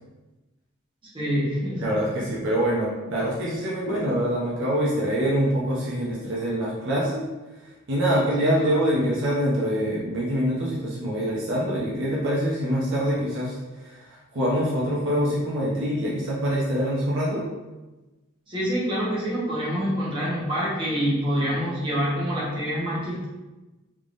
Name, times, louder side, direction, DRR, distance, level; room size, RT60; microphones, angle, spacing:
voice 1, 1.1-1.8 8.4-9.0 18.5-23.3, equal, 25° right, -7 dB, 1.1 m, -26 dB
voice 2, 1.8-7.3 7.6-17.4, equal, 60° right, -5 dB, 0.7 m, -25 dB
3.6 x 3.3 x 2.5 m, 1.1 s
head